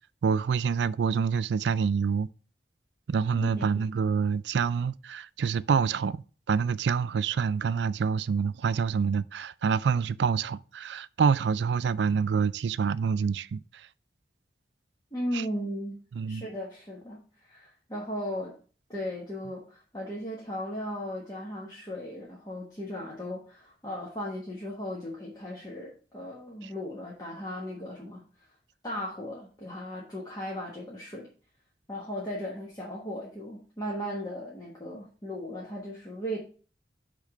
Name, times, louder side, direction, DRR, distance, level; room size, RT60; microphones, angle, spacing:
voice 1, 0.2-2.3 3.1-13.6 15.3-15.4 16.1-16.4 26.6-26.7, right 6 dB, 85° right, 0.4 m, -27 dB
voice 2, 3.4-3.8 15.1-16.0 16.3-18.6 18.9-28.3 28.8-31.3 31.9-36.4, equal, 20° left, 1.4 m, -37 dB
8.4 x 3.7 x 4.9 m
head